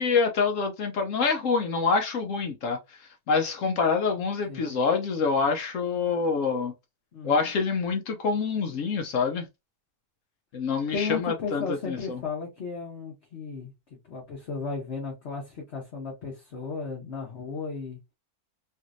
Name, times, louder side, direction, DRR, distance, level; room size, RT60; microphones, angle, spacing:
voice 1, 0.0-2.8 3.3-6.7 7.2-9.5 10.5-12.2, left 5 dB, 65° left, 0.9 m, -26 dB
voice 2, 7.1-7.5 10.9-13.7 14.0-18.0, left 5 dB, 45° left, 1.1 m, -34 dB
3.2 x 3.0 x 2.5 m
omnidirectional pair, 1.8 m